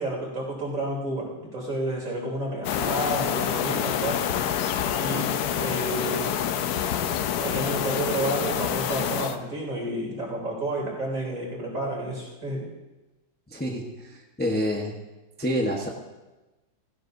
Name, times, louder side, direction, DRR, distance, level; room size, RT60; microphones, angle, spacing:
voice 1, 0.0-4.2 5.0-6.3 7.4-12.7, right 1 dB, 40° right, -4 dB, 3.9 m, -30 dB
sound 1, 2.6-9.4, left 9 dB, 65° left, 1.0 m, -27 dB
voice 2, 13.5-15.0 15.4-15.9, equal, 10° left, 0 dB, 0.7 m, -28 dB
17.0 x 16.0 x 2.7 m, 1.1 s
omnidirectional pair, 2.1 m